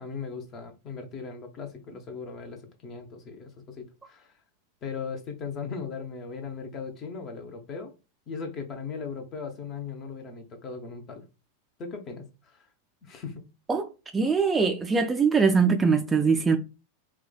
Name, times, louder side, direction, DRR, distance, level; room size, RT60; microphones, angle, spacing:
voice 1, 0.0-4.3 4.8-7.9 8.3-11.2 11.8-12.7 13.0-13.4, left 5 dB, 30° left, 0.8 m, -38 dB
voice 2, 14.1-16.6, right 5 dB, 15° right, 0.4 m, -22 dB
4.5 x 2.2 x 2.2 m
figure-of-eight pair, 90°, 0 cm